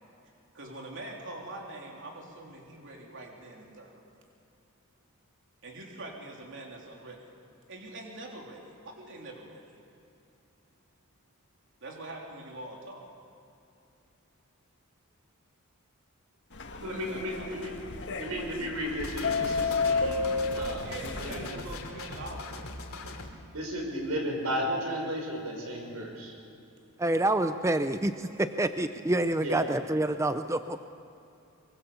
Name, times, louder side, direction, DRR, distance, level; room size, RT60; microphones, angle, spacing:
voice 1, 0.5-3.9 5.6-7.2 7.7-9.8 11.8-13.0 16.7-17.5 20.8-22.8, right 2 dB, 60° right, 0 dB, 3.4 m, -44 dB
sound 1, 16.5-21.5, left 4 dB, 55° left, 1.5 m, -32 dB
voice 2, 16.8-17.7 18.2-20.2 20.5-21.5 23.5-26.3 29.4-29.7, equal, 85° right, 1 dB, 6.4 m, -34 dB
sound 2, 19.0-23.3, left 2 dB, 75° left, 2.8 m, -40 dB
voice 3, 27.0-30.9, right 1 dB, 15° right, 9 dB, 0.5 m, -27 dB
24.0 x 23.5 x 7.1 m, 2.7 s
head